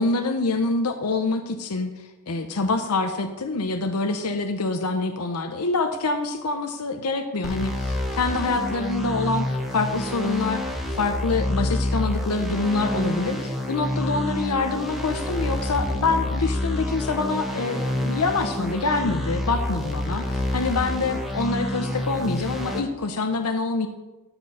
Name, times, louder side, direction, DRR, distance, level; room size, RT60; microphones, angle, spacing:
voice 1, 0.0-1.9 2.3-23.9, left 3 dB, 85° left, 7 dB, 0.8 m, -26 dB
sound 1, 7.4-22.8, left 1 dB, ahead, 1.2 m, -28 dB
13.0 x 4.5 x 5.5 m, 1.1 s
head